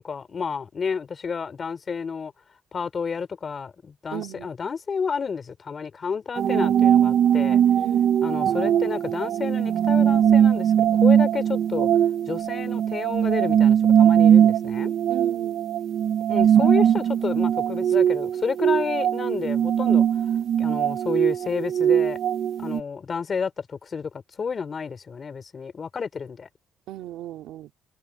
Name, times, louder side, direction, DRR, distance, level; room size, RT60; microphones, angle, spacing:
voice 1, 0.0-2.3 2.7-7.6 8.2-11.9 12.3-14.9 16.3-20.1 20.6-22.2 22.6-26.5, left 5 dB, 45° left, 3.6 m, -30 dB
voice 2, 4.1-4.5 7.8-8.2 15.1-15.6 26.9-27.7, right 13 dB, 90° right, 3.5 m, -35 dB
sound 1, 6.4-22.8, right 9 dB, 70° right, 0.7 m, -20 dB
cardioid pair, 90°, 0 cm